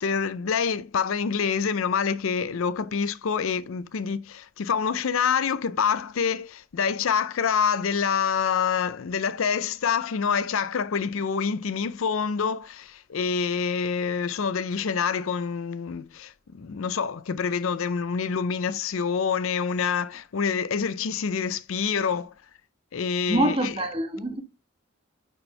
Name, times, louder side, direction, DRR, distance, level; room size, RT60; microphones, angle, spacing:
voice 1, 0.0-22.3 22.9-23.8, left 6 dB, 75° left, 0.5 m, -26 dB
voice 2, 23.3-24.4, right 1 dB, 25° right, 1.3 m, -25 dB
9.7 x 4.4 x 3.2 m
head